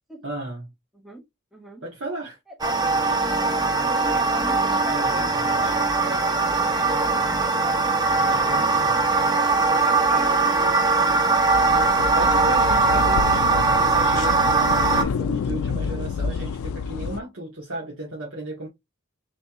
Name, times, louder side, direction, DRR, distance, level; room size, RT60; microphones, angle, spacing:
voice 1, 0.2-0.7 1.8-2.4 4.9-5.7 8.2-9.0 10.1-10.2 11.6-18.7, right 2 dB, 70° right, 1.4 m, -35 dB
voice 2, 1.5-1.8 2.5-3.0 3.6-5.8 6.1-9.5 9.8-10.6, right 1 dB, ahead, 1.0 m, -41 dB
sound 1, 2.6-15.0, right 3 dB, 20° right, 0.4 m, -21 dB
sound 2, 11.5-17.2, left 5 dB, 85° left, 0.3 m, -28 dB
3.4 x 3.3 x 2.9 m
head